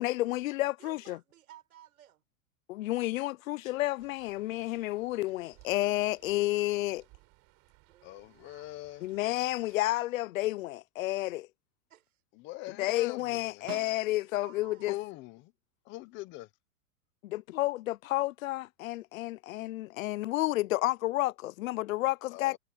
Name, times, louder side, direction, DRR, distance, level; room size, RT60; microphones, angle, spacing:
voice 1, 0.0-1.2 2.7-7.0 9.0-11.5 12.8-14.9 17.2-22.6, left 17 dB, 65° left, 0.7 m, -31 dB
voice 2, 0.8-2.2 7.8-8.9 11.9-12.2 12.6-13.0 14.2-15.1, right 12 dB, 85° right, 5.3 m, -57 dB
sound 1, 4.0-9.8, right 25 dB, 35° right, 4.7 m, -63 dB
voice 3, 8.0-9.1 12.4-13.7 14.9-15.5 15.8-16.5 22.3-22.6, left 18 dB, 25° left, 0.9 m, -42 dB
Snare drum, 13.7-14.6 19.0-19.1, right 17 dB, 55° right, 1.3 m, -47 dB
supercardioid pair, 160°, 43 cm